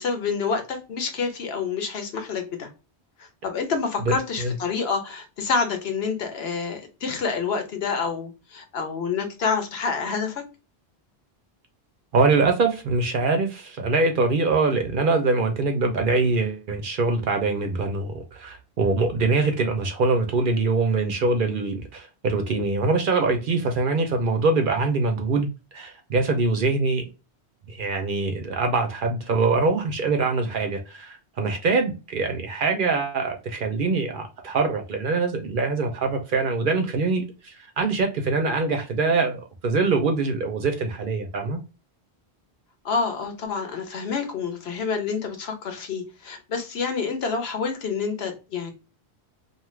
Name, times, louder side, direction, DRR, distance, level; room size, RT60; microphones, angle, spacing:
voice 1, 0.0-2.7 3.2-10.4 42.8-48.7, left 5 dB, 70° left, 1.0 m, -28 dB
voice 2, 4.0-4.5 12.1-27.0 27.7-41.6, right 3 dB, 60° right, 0.7 m, -23 dB
2.6 x 2.3 x 3.0 m
omnidirectional pair, 1.1 m